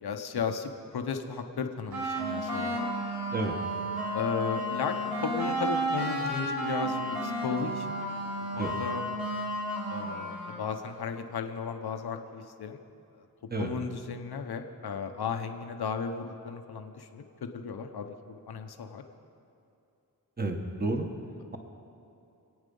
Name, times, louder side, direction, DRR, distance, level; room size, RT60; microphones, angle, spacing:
voice 1, 0.0-2.9 4.1-4.9 5.2-8.0 8.5-9.0 9.9-12.8 13.6-17.2 17.6-19.0, left 6 dB, 80° left, 5 dB, 1.0 m, -35 dB
sound 1, 1.9-10.7, right 1 dB, 65° right, 4.3 m, -32 dB
voice 2, 20.4-21.1, right 2 dB, 25° right, 3 dB, 1.5 m, -30 dB
26.0 x 8.9 x 5.5 m, 2.7 s
wide cardioid pair, 75°, 38 cm